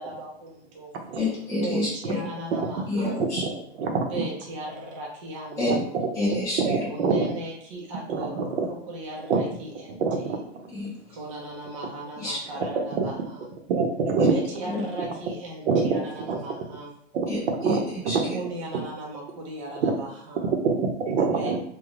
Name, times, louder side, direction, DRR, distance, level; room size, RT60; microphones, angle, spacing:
voice 1, 0.0-1.0 1.5-3.2 4.0-6.0 6.9-10.4 11.1-13.5 14.3-16.9 18.2-20.5 21.3-21.6, right 1 dB, 30° right, -3 dB, 0.4 m, -37 dB
voice 2, 1.2-2.1 2.9-3.4 5.6-5.7 6.1-6.8 10.7-10.9 12.2-12.4 14.2-14.3 14.7-14.8 17.3-17.8 18.1-18.2, left 2 dB, 10° left, -9 dB, 0.7 m, -28 dB
voice 3, 3.8-4.2 5.6-6.1 6.6-7.3 8.1-8.7 9.3-9.4 10.0-10.4 13.0-13.1 13.7-14.4 15.7-16.5 17.1-17.3 17.6-17.8 18.0-18.3 19.8-20.0 20.6-21.6, right 4 dB, 75° right, 4 dB, 0.6 m, -25 dB
2.4 x 2.1 x 3.1 m, 0.67 s
supercardioid pair, 170°, 34 cm